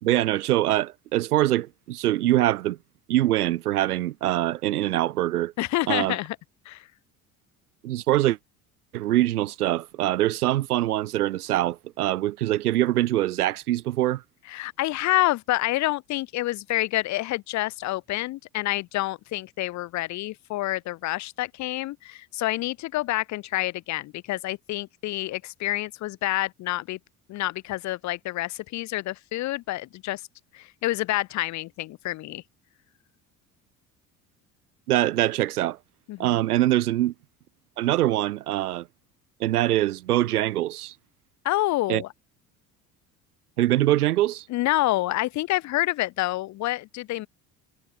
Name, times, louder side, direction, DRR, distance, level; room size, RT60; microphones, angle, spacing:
voice 1, 0.0-2.8 3.1-5.5 5.9-6.2 7.8-8.4 8.9-14.2 34.9-35.8 36.2-37.1 37.8-38.9 39.4-40.9 41.9-42.0 43.6-44.4, right 14 dB, 70° right, 1.3 m, -23 dB
voice 2, 5.6-6.4 6.7-6.8 14.5-27.0 27.3-30.2 30.5-32.4 36.1-36.4 41.4-42.1 44.5-47.3, left 17 dB, 40° left, 0.7 m, -28 dB
figure-of-eight pair, 60°, 46 cm